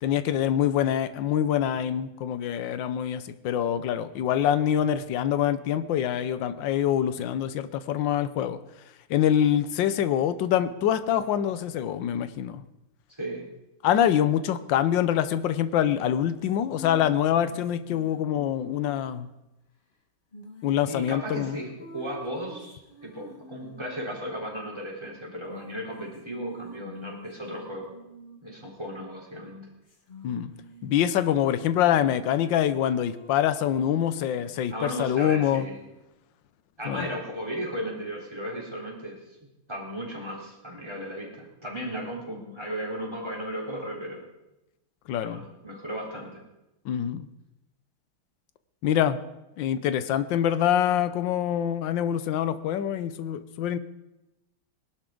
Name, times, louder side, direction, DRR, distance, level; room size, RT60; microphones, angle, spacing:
voice 1, 0.0-8.6 9.1-12.6 13.8-19.3 20.6-21.6 30.2-30.5 30.8-35.7 36.8-37.1 45.1-45.4 46.8-47.3 48.8-49.2 49.6-53.8, left 10 dB, 70° left, 13 dB, 1.5 m, -25 dB
sound 1, 15.8-19.2 20.3-24.1 25.5-28.6 29.9-30.9 31.2-34.1, left 2 dB, 25° left, 1.5 m, -46 dB
voice 2, 20.8-27.9 28.4-29.7 34.7-35.8 36.8-39.2 39.7-44.3 45.2-46.4, equal, 15° right, -2 dB, 3.9 m, -35 dB
21.0 x 12.0 x 3.9 m, 0.94 s
omnidirectional pair, 2.2 m